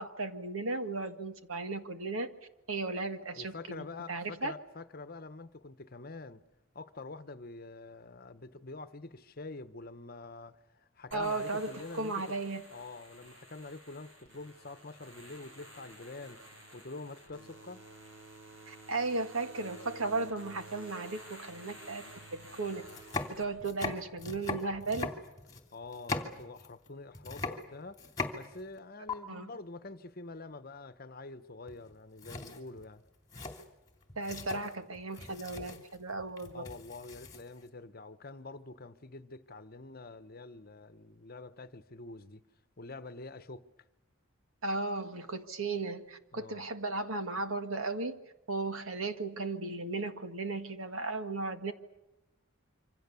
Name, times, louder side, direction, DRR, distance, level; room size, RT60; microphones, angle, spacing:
voice 1, 0.0-2.3 2.7-4.5 11.1-12.6 18.7-22.1 22.3-22.8 23.3-25.1 29.3-29.5 34.2-36.6 44.6-48.2 48.5-51.7, right 3 dB, 80° right, 1.9 m, -35 dB
voice 2, 3.4-6.4 6.7-12.2 12.7-16.4 16.7-17.8 25.7-28.0 28.3-33.0 36.5-42.4 42.8-43.7 46.3-46.6, left 3 dB, 45° left, 1.1 m, -46 dB
sound 1, 11.1-23.4, right 1 dB, 60° right, 7.6 m, -52 dB
sound 2, 22.2-22.3 22.8-26.9 27.1-28.8 29.1-29.2 31.7-31.9 32.2-37.7, left 3 dB, 15° left, 2.9 m, -40 dB
27.0 x 25.5 x 7.0 m
head